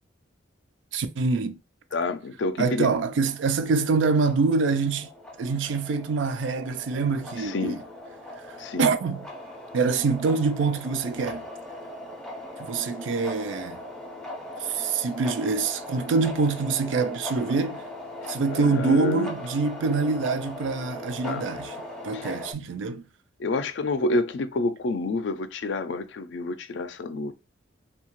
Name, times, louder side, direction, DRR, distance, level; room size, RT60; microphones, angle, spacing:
voice 1, 0.9-1.6 2.6-5.1 5.4-7.8 8.5-9.3 9.7-11.5 12.6-13.8 14.6-17.8 18.3-21.8 22.0-23.0, right 4 dB, 75° right, 0.4 m, -25 dB
voice 2, 1.9-2.9 7.4-7.8 8.6-8.9 18.5-19.3 21.2-21.4 22.1-22.3 23.4-27.3, left 2 dB, 70° left, 0.4 m, -28 dB
sound 1, 3.2-22.5, left 1 dB, 5° left, 0.4 m, -39 dB
2.8 x 2.2 x 2.9 m
head